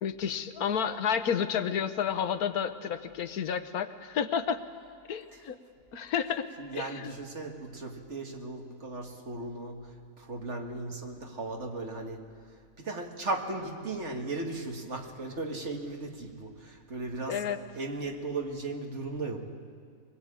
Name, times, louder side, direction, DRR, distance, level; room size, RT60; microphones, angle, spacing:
voice 1, 0.0-4.6 5.1-5.6 5.9-6.5 6.7-7.1 17.3-17.6, left 7 dB, 90° left, 11 dB, 1.4 m, -30 dB
voice 2, 6.6-19.5, right 2 dB, 50° right, 2 dB, 2.2 m, -37 dB
23.5 x 20.5 x 8.8 m, 2.2 s
omnidirectional pair, 1.5 m